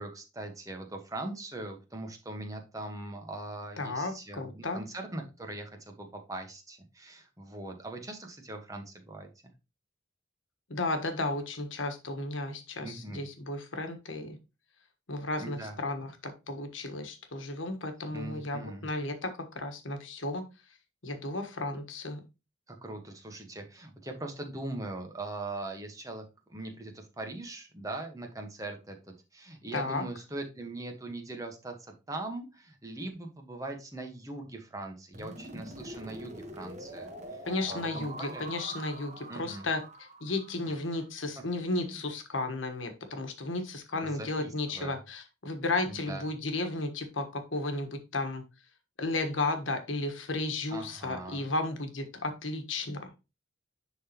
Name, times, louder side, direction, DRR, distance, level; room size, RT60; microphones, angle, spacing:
voice 1, 0.0-9.3 12.8-13.2 15.4-15.8 18.1-18.9 22.7-37.4 37.6-38.5 39.3-39.7 41.9-42.0 43.9-45.0 45.9-46.2 50.7-51.5, right 2 dB, 20° right, 3 dB, 1.2 m, -41 dB
voice 2, 3.8-4.8 10.7-14.4 15.1-20.4 21.0-22.2 29.7-30.0 37.4-39.8 40.2-48.4 49.0-53.1, left 2 dB, 85° left, 6 dB, 1.4 m, -34 dB
sound 1, 35.1-41.1, right 1 dB, 35° right, 1.2 m, -44 dB
10.5 x 3.9 x 2.9 m, 0.27 s
head